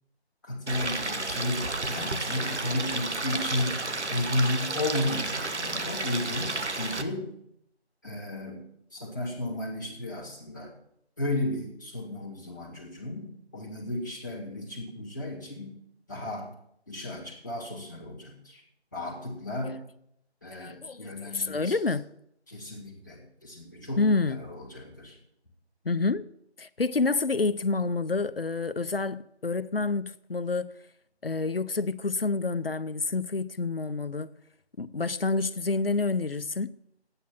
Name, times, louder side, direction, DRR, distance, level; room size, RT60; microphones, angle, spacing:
voice 1, 0.4-3.8 4.1-7.3 8.0-8.6 8.9-10.7 11.2-15.7 16.1-16.5 16.9-18.6 18.9-19.8 20.4-21.8 22.5-25.2, left 1 dB, 15° left, 1.8 m, -33 dB
Stream, 0.7-7.0, right 2 dB, 85° right, 1.5 m, -32 dB
voice 2, 20.5-22.1 24.0-24.5 25.8-26.3 26.6-30.8 31.2-34.3 34.8-36.8, left 3 dB, 60° left, 0.6 m, -28 dB
12.5 x 9.2 x 5.9 m
figure-of-eight pair, 175°, 33 cm